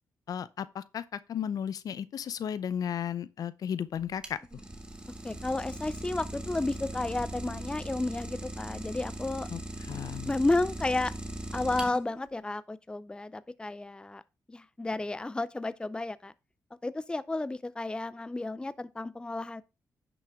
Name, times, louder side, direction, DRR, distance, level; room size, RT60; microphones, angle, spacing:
voice 1, 0.3-4.4 9.5-10.3, left 8 dB, 70° left, 0.6 m, -34 dB
Idling, 3.9-12.3, right 1 dB, 15° right, 1.7 m, -39 dB
voice 2, 5.2-9.5 10.2-11.1 11.5-14.2 14.5-16.3 16.8-19.6, left 2 dB, 15° left, 0.5 m, -32 dB
10.0 x 6.1 x 3.6 m
cardioid pair, 75°, 7 cm